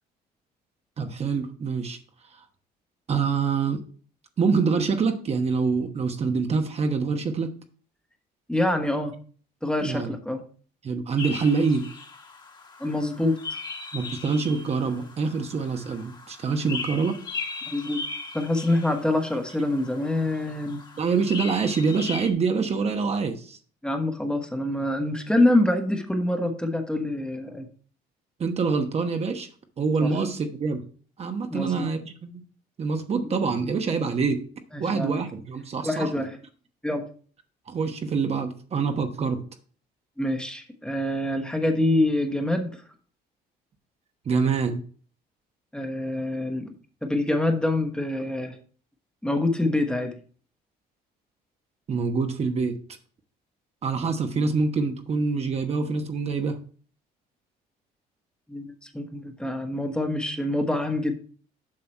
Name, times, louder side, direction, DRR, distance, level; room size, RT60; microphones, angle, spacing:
voice 1, 1.0-2.0 3.1-3.8 4.4-7.5 9.8-10.2 10.8-11.9 13.9-17.1 21.0-23.6 28.4-29.5 29.8-30.8 31.2-32.4 32.8-34.4 34.8-36.2 37.7-39.4 44.3-44.8 51.9-52.8 53.8-56.6, right 5 dB, 40° right, 6 dB, 1.1 m, -25 dB
voice 2, 8.5-9.1 9.6-10.4 12.8-13.6 17.7-18.0 18.3-20.8 23.8-27.7 30.0-30.1 31.5-31.9 34.7-35.2 35.8-36.4 36.8-37.0 40.2-42.7 45.7-46.7 47.0-48.6 49.2-50.2 58.5-61.1, left 1 dB, 5° left, 5 dB, 1.2 m, -26 dB
sound 1, 11.2-22.3, left 4 dB, 25° left, 1.5 m, -38 dB
7.6 x 5.8 x 4.4 m, 0.42 s
cardioid pair, 110°, 17 cm